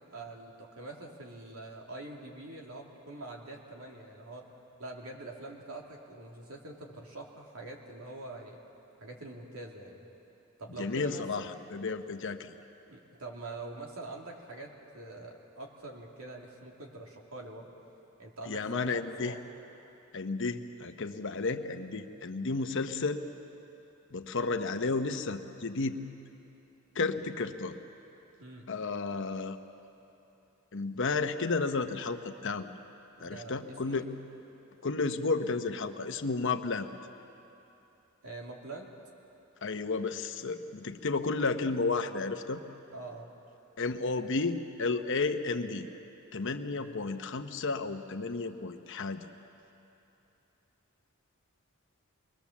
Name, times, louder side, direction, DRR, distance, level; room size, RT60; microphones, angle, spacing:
voice 1, 0.1-4.5 4.8-8.6 9.0-10.1 10.6-11.5 12.9-17.7 18.2-19.4 28.4-28.7 33.2-34.1 38.2-38.9 42.9-43.3 46.7-47.0, right 2 dB, 75° right, 0 dB, 2.7 m, -44 dB
voice 2, 10.8-12.5 18.5-19.3 20.1-23.2 24.1-26.0 26.9-27.8 28.7-29.6 30.7-32.6 33.2-34.1 34.8-36.9 39.6-42.6 43.8-45.9 46.3-49.3, left 3 dB, 60° left, 8 dB, 1.0 m, -32 dB
25.0 x 21.0 x 7.2 m, 2.9 s
head